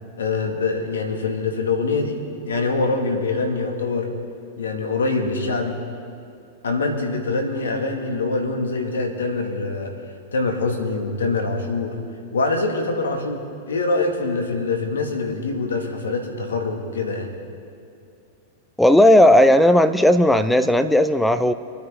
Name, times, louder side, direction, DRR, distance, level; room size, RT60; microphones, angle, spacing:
voice 1, 0.2-4.1 4.6-5.8 6.6-12.0 12.3-17.3, left 3 dB, 85° left, 3 dB, 2.1 m, -24 dB
voice 2, 18.8-21.5, left 1 dB, 5° left, 11 dB, 0.6 m, -15 dB
25.0 x 9.3 x 3.8 m, 2.5 s
hypercardioid pair, 105°, 0 cm